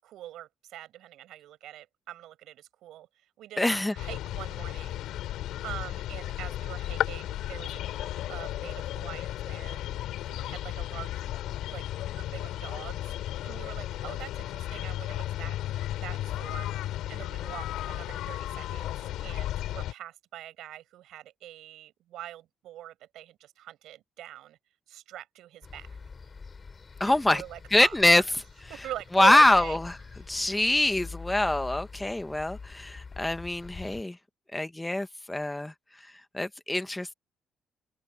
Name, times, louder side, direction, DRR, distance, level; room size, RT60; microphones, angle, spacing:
voice 1, 0.0-5.1 5.6-9.8 10.2-11.1 11.7-11.9 12.1-15.6 16.0-16.7 17.1-24.6 24.9-26.0 27.1-28.2 28.7-29.8 30.3-30.4, right 13 dB, 80° right, 5.5 m, -43 dB
voice 2, 3.6-3.9 27.0-27.4 27.7-28.2 29.1-30.0 30.3-34.2 34.5-37.1, left 1 dB, 10° left, 0.9 m, -24 dB
sound 1, 4.0-19.9, left 13 dB, 85° left, 4.3 m, -34 dB
sound 2, 25.6-34.0, left 4 dB, 30° left, 3.7 m, -45 dB
cardioid pair, 130°, 0 cm